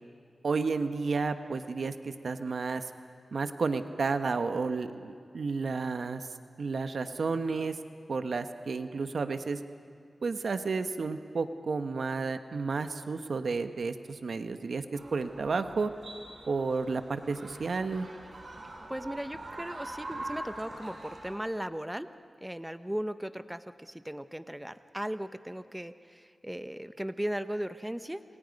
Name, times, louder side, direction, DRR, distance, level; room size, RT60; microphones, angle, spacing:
voice 1, 0.4-2.8 3.3-6.2 6.6-7.8 8.1-9.6 10.2-15.9 16.5-18.1, right 4 dB, 75° right, 9 dB, 1.0 m, -31 dB
sound 1, 14.9-21.4, right 2 dB, 60° right, 5.7 m, -44 dB
voice 2, 18.9-22.1 22.4-28.2, equal, 10° right, 11 dB, 1.0 m, -37 dB
27.5 x 27.5 x 5.3 m, 2.1 s
cardioid pair, 45°, 0 cm